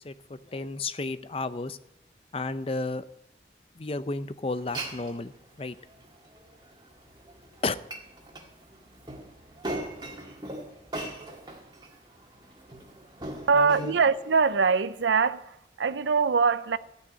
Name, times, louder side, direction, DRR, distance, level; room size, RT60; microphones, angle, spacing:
voice 1, 0.0-1.8 2.3-3.1 3.8-5.8 7.6-7.8 13.5-14.0, left 3 dB, 30° left, 0.5 m, -32 dB
Glass, 4.5-14.5, right 1 dB, 25° right, 1.8 m, -41 dB
voice 2, 13.5-16.8, right 5 dB, 90° right, 0.6 m, -23 dB
15.0 x 6.2 x 9.2 m
head